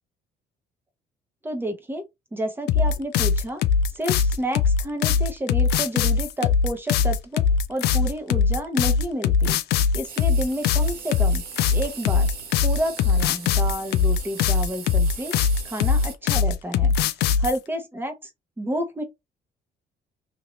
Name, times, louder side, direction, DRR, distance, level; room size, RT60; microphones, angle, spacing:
voice 1, 1.4-2.0 2.3-3.6 3.9-7.4 7.7-9.6 9.9-11.4 11.7-12.3 12.6-15.3 15.6-16.9 17.4-18.1 18.6-19.0, equal, 10° right, 0.9 m, -30 dB
sound 1, 2.7-17.6, left 6 dB, 75° left, 0.4 m, -21 dB
sound 2, 10.1-16.1, right 6 dB, 70° right, 1.2 m, -40 dB
2.8 x 2.7 x 3.0 m
cardioid pair, 110°, 17 cm